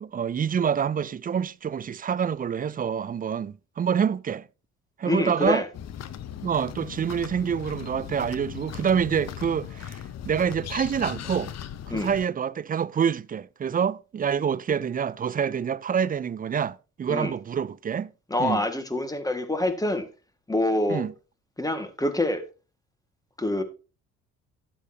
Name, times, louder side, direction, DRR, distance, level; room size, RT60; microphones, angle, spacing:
voice 1, 0.0-4.5 5.0-5.6 6.4-11.5 11.9-18.1 18.4-18.6 20.9-21.1, right 7 dB, 25° right, 0.4 m, -27 dB
voice 2, 5.1-5.7 11.9-12.1 17.1-17.3 18.3-20.1 20.5-21.0 21.6-22.4 23.4-23.6, left 1 dB, 10° left, 1.8 m, -26 dB
sound 1, 5.7-12.3, left 9 dB, 50° left, 0.8 m, -38 dB
12.0 x 8.5 x 2.8 m
supercardioid pair, 75°, 33 cm